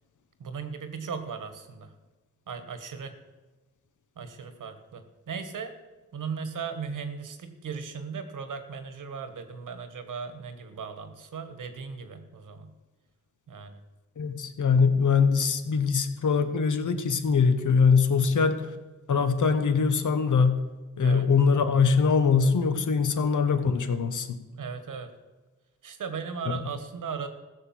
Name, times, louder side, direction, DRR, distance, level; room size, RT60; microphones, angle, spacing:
voice 1, 0.4-1.9 2.5-3.1 4.1-5.7 6.1-12.7 13.5-13.8 18.2-18.4 21.0-21.3 23.1-23.2 24.6-25.1 25.8-27.3, right 6 dB, 80° right, 9 dB, 1.5 m, -37 dB
voice 2, 14.2-18.7 19.1-20.6 21.0-24.4, left 5 dB, 70° left, 9 dB, 1.2 m, -23 dB
15.0 x 6.6 x 7.6 m, 1.2 s
cardioid pair, 85°, 31 cm